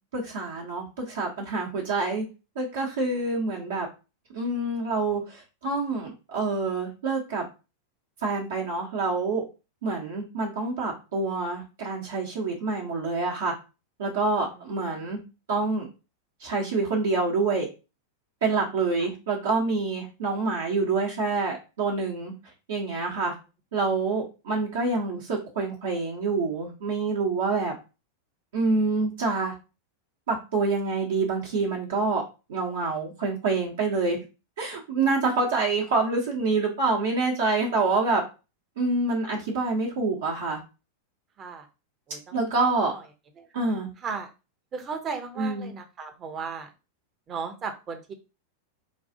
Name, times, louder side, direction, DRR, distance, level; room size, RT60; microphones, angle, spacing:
voice 1, 0.1-2.2 2.6-3.9 4.3-7.4 8.2-9.4 9.8-13.5 14.0-15.2 15.5-15.9 16.4-17.7 18.4-22.3 22.7-23.3 23.7-27.7 28.5-29.5 30.3-32.2 32.5-34.2 34.6-38.2 38.8-40.6 42.3-42.9 43.5-43.9 45.4-45.7, right 3 dB, 60° right, -2 dB, 1.0 m, -27 dB
voice 2, 42.1-42.5 42.9-43.0 43.4-43.5 44.0-44.3 44.7-46.7 47.3-48.1, right 5 dB, 30° right, 7 dB, 0.8 m, -35 dB
5.1 x 2.4 x 2.7 m, 0.29 s
figure-of-eight pair, 90°, 0 cm